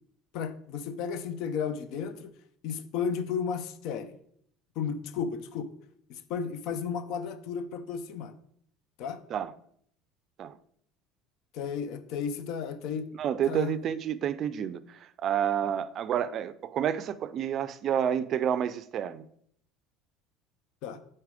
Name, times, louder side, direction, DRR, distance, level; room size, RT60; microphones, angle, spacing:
voice 1, 0.3-2.3 2.6-4.1 4.8-5.7 6.1-8.3 9.0-9.2 11.5-13.1 13.5-13.7 20.8-21.0, left 6 dB, 70° left, 0.6 m, -33 dB
voice 2, 13.2-19.3, right 9 dB, 50° right, 0.4 m, -29 dB
4.7 x 4.3 x 4.9 m
supercardioid pair, 105°, 0 cm